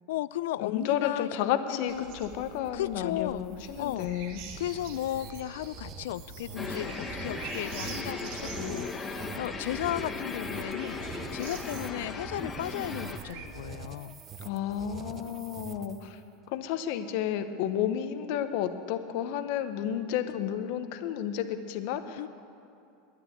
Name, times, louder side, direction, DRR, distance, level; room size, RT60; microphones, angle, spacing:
voice 1, 0.1-2.3 2.7-3.5 3.8-4.1 4.6-14.2 22.2-22.3, left 14 dB, 80° left, 18 dB, 0.3 m, -35 dB
voice 2, 0.6-4.4 14.4-16.2 16.5-22.3, left 10 dB, 60° left, 9 dB, 0.9 m, -31 dB
sound 1, 1.9-13.5, right 5 dB, 65° right, 1.5 m, -45 dB
sound 2, 2.3-16.2, right 7 dB, 30° right, 0.6 m, -46 dB
sound 3, 6.6-13.2, left 4 dB, 20° left, 1.0 m, -37 dB
10.5 x 9.9 x 8.7 m, 2.6 s
supercardioid pair, 140°, 0 cm